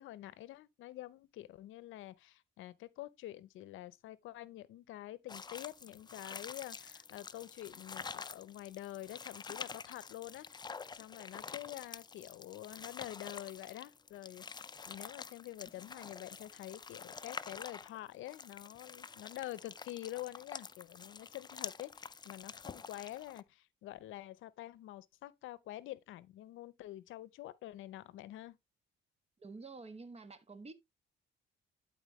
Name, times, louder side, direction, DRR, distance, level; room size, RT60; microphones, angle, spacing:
voice 1, 0.0-10.5 10.9-28.6, left 15 dB, 85° left, 0.6 m, -47 dB
sound 1, 5.3-23.4, left 5 dB, 20° left, 0.4 m, -48 dB
voice 2, 29.4-30.7, right 3 dB, 30° right, 1.3 m, -49 dB
11.5 x 4.2 x 3.1 m
cardioid pair, 90°, 20 cm